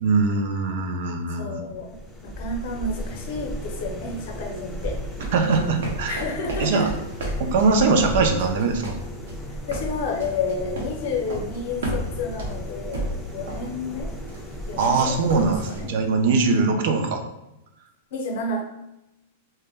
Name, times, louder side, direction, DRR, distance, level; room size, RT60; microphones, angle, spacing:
voice 1, 0.0-1.7 5.3-6.3 6.6-6.9 7.4-9.0 14.7-17.2, right 4 dB, 60° right, 5 dB, 0.4 m, -22 dB
voice 2, 1.4-2.0 2.2-5.0 6.1-6.9 9.7-14.1 14.7-15.2 15.7-15.9 16.5-16.9 18.1-18.6, left 3 dB, 60° left, 2 dB, 0.6 m, -30 dB
sound 1, 1.7-16.4, equal, 5° left, 0.4 m, -36 dB
sound 2, 5.2-11.0 11.3-11.6 11.8-12.7 12.9-13.8 14.3-14.5 14.8-15.8, right 1 dB, 90° right, 0.7 m, -32 dB
2.1 x 2.1 x 3.3 m, 0.92 s
supercardioid pair, 150°, 0 cm